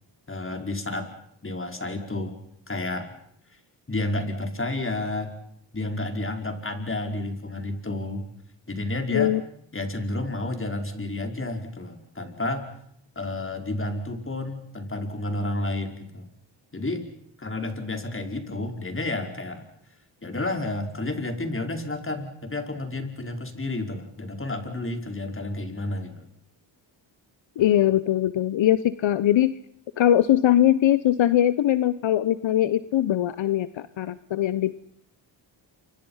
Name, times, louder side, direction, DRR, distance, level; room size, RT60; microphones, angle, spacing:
voice 1, 0.3-1.1 1.4-2.4 2.7-3.1 3.9-5.3 5.7-8.3 8.7-9.3 9.7-12.7 13.1-16.2 16.7-17.1 17.4-19.6 20.2-26.3, left 2 dB, 25° left, 5 dB, 5.0 m, -31 dB
voice 2, 27.6-29.6 30.0-34.7, left 12 dB, 70° left, 15 dB, 1.0 m, -21 dB
29.0 x 25.0 x 5.7 m, 0.70 s
cardioid pair, 75°, 48 cm